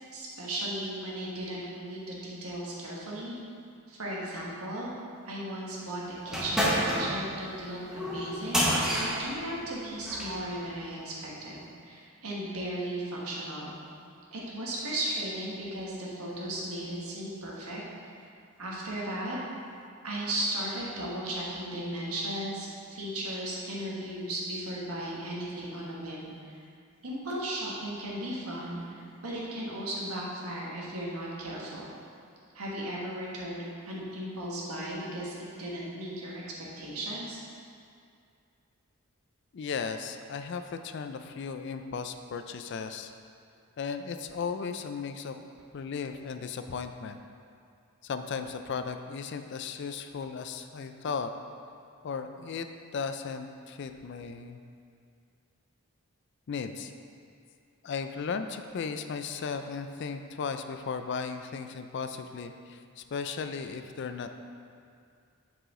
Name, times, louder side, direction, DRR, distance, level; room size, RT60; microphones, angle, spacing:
voice 1, 0.1-3.4 3.9-4.9 5.2-8.6 8.9-13.7 14.3-17.8 18.6-19.4 20.0-26.6 27.0-31.9 32.5-37.4, right 1 dB, 90° right, -4 dB, 1.4 m, -36 dB
sound 1, 6.3-10.4, equal, 5° right, 0.8 m, -29 dB
voice 2, 39.5-43.1 43.8-45.4 45.7-47.2 48.0-51.3 52.0-52.7 52.9-54.6 56.5-56.9 57.8-64.4, left 5 dB, 55° left, 8 dB, 0.3 m, -36 dB
7.7 x 4.9 x 3.7 m, 2.4 s
head